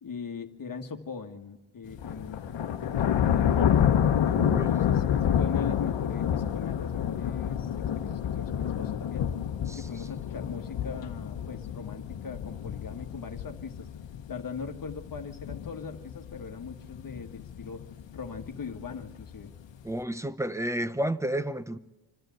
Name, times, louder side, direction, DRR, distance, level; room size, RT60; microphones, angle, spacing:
voice 1, 0.0-3.8 4.5-9.3 9.8-13.9 14.3-17.8 18.1-19.5, left 5 dB, 45° left, 5 dB, 1.7 m, -40 dB
sound 1, 1.9-19.8, left 9 dB, 65° left, 1.2 m, -29 dB
voice 2, 4.3-4.7 9.7-9.8 19.8-21.8, right 1 dB, 5° right, 13 dB, 0.8 m, -31 dB
26.5 x 12.5 x 9.2 m, 1.1 s
cardioid pair, 95°, 48 cm